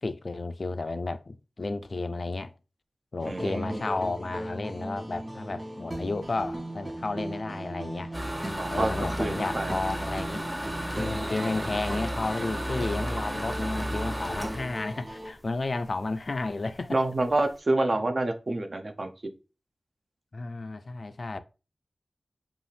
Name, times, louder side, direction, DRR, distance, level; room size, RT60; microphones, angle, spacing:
voice 1, 0.0-2.5 3.1-8.1 8.7-10.5 11.0-17.0 17.8-18.1 20.3-21.4, left 3 dB, 60° left, 0.4 m, -32 dB
sound 1, 3.2-15.3, right 1 dB, 30° right, 1.8 m, -37 dB
voice 2, 3.2-3.9 8.6-8.9 9.2-9.8 16.9-19.1, right 2 dB, 50° right, 0.7 m, -27 dB
sound 2, 8.1-15.9 16.3-16.4 16.8-16.9 17.1-17.5, equal, 15° right, 0.9 m, -34 dB
5.4 x 2.5 x 3.3 m
wide cardioid pair, 75°, 0 cm